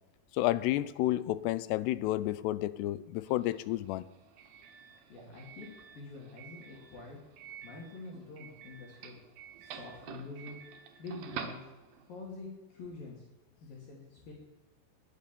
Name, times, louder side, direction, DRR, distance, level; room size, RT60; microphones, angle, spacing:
voice 1, 0.3-4.1, left 15 dB, 90° left, 16 dB, 2.7 m, -31 dB
Doorbell, 3.2-12.2, right 7 dB, 70° right, 2.8 m, -49 dB
voice 2, 5.1-5.7 5.9-7.2 7.6-9.2 9.6-10.6 11.0-11.6 12.1-13.2 13.6-14.3, left 3 dB, 60° left, -3 dB, 4.3 m, -46 dB
21.0 x 8.4 x 7.0 m, 1.1 s
omnidirectional pair, 4.7 m